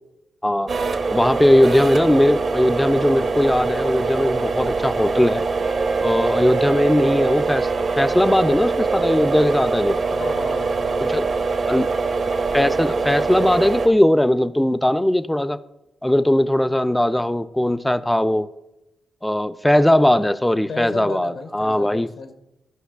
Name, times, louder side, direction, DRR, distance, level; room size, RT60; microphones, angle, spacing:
sound 1, 0.7-13.9, right 4 dB, 55° right, 0.8 m, -23 dB
voice 1, 1.1-5.4 6.0-7.7 8.0-10.0 11.0-11.3 11.7-11.9 12.5-15.6 16.0-18.5 19.2-22.1, left 1 dB, 10° left, 0.3 m, -19 dB
Wind instrument woodwind instrument, 5.6-9.9, right 5 dB, 85° right, 1.4 m, -29 dB
voice 2, 10.1-11.4 11.7-12.0 20.7-22.3, left 4 dB, 70° left, 0.7 m, -34 dB
14.0 x 5.5 x 2.3 m
cardioid pair, 60°, 0 cm